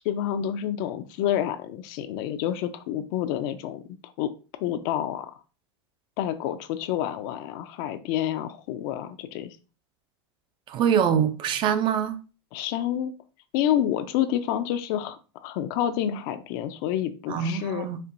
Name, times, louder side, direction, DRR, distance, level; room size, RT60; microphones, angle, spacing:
voice 1, 0.0-4.3 4.6-5.3 6.2-9.6 12.5-13.1 13.5-17.9, left 11 dB, 55° left, 0.4 m, -28 dB
voice 2, 10.7-12.2 17.3-18.0, right 8 dB, 35° right, 0.4 m, -24 dB
4.4 x 2.6 x 2.5 m
supercardioid pair, 115°, 14 cm